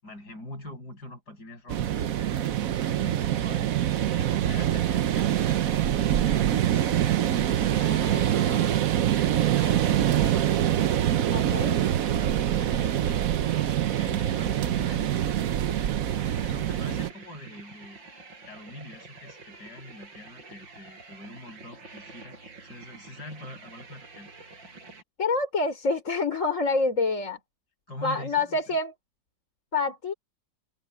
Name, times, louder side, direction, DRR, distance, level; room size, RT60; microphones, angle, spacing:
voice 1, 0.0-3.7 4.1-7.0 7.6-10.7 11.6-13.4 13.9-15.3 16.4-18.0 18.5-24.3 27.9-28.8, left 1 dB, 55° left, 8.1 m, -44 dB
sound 1, 1.7-17.1, right 11 dB, 60° right, 1.0 m, -25 dB
sound 2, 5.1-25.0, right 3 dB, 80° right, 6.2 m, -48 dB
voice 2, 7.8-8.5 11.3-11.8 25.2-27.4 28.0-28.9 29.7-30.1, left 3 dB, 40° left, 4.3 m, -27 dB
open air
omnidirectional pair, 2.0 m